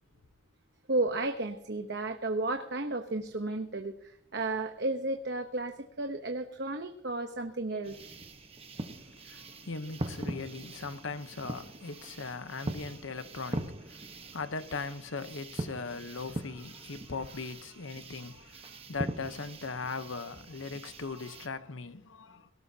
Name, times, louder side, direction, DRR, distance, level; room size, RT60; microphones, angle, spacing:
voice 1, 0.9-8.0, right 2 dB, 55° right, 1.0 m, -33 dB
sound 1, 7.8-21.5, right 1 dB, 30° right, 1.1 m, -42 dB
voice 2, 9.0-22.5, left 4 dB, 70° left, 0.9 m, -39 dB
18.5 x 18.0 x 2.8 m
head